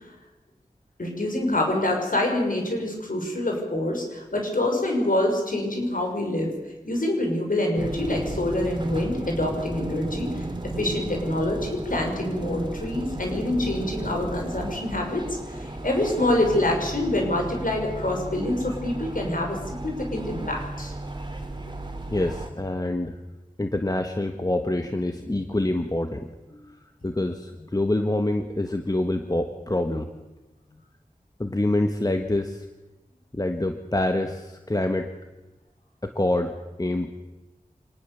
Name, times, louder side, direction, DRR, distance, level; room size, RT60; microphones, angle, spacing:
voice 1, 1.0-6.6 6.8-10.5 10.8-20.9, left 1 dB, 75° left, 1 dB, 5.9 m, -26 dB
sound 1, 7.8-22.5, right 1 dB, 35° right, 2.8 m, -34 dB
voice 2, 22.1-23.2 23.6-30.1 31.4-32.6 33.3-35.1 36.0-37.1, left 1 dB, 25° left, 6 dB, 1.4 m, -26 dB
25.5 x 19.5 x 7.1 m, 1.1 s
wide cardioid pair, 60°, 14 cm